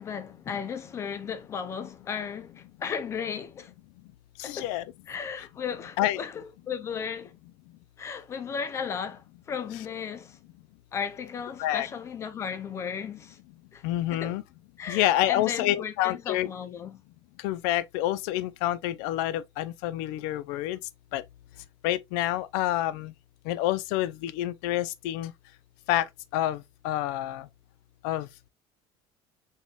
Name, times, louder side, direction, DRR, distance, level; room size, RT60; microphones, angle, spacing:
voice 1, 0.0-3.7 4.4-4.7 5.1-7.3 8.0-10.4 10.9-13.4 13.7-13.8 14.1-14.4 14.8-17.0, left 7 dB, 30° left, 0.4 m, -35 dB
voice 2, 4.4-4.8 5.4-5.5 6.0-6.2 11.6-11.9 13.8-14.4 14.9-16.5 17.4-20.8 21.1-21.2 21.8-23.1 23.5-25.3 25.9-27.5 28.0-28.3, left 14 dB, 90° left, 0.4 m, -28 dB
4.1 x 3.6 x 2.3 m
cardioid pair, 160°, 10 cm